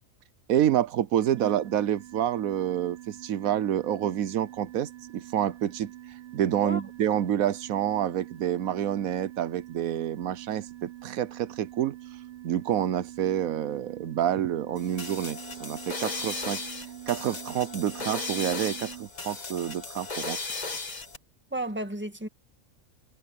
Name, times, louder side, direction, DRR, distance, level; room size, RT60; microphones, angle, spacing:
voice 1, 0.5-5.9 6.3-12.0 12.4-16.6 17.1-20.4, right 10 dB, 80° right, 1.2 m, -28 dB
sound 1, 1.2-19.1, right 15 dB, 60° right, 0.8 m, -45 dB
sound 2, 14.8-21.2, left 3 dB, 30° left, 1.8 m, -36 dB
voice 2, 21.5-22.3, right 2 dB, 10° right, 1.8 m, -33 dB
omnidirectional pair, 1.4 m